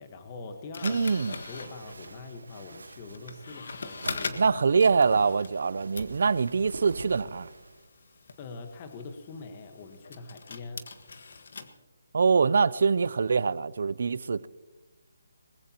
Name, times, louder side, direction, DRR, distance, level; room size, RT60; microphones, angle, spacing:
voice 1, 0.0-1.0 1.4-4.5 8.4-10.9, left 3 dB, 30° left, 1.4 m, -43 dB
sound 1, 0.7-5.7 5.9-11.7, left 4 dB, 60° left, 1.5 m, -42 dB
voice 2, 0.8-1.3 4.4-7.5 12.1-14.5, right 5 dB, 60° right, 0.5 m, -24 dB
sound 2, 1.1-7.9, right 3 dB, 85° right, 1.5 m, -45 dB
22.0 x 20.5 x 3.0 m
hypercardioid pair, 160°, 0 cm